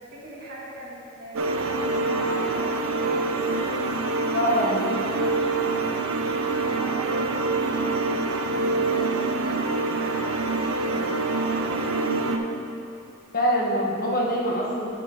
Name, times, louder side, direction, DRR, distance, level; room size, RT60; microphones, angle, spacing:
voice 1, 0.0-3.9 5.1-9.3 10.0-12.0 12.3-12.5, equal, 45° right, -6 dB, 1.8 m, -41 dB
sound 1, 1.4-12.4, right 3 dB, 75° right, 0.6 m, -25 dB
voice 2, 4.3-5.0 13.3-14.9, equal, 45° left, -3 dB, 1.2 m, -24 dB
11.0 x 5.4 x 3.8 m, 2.6 s
head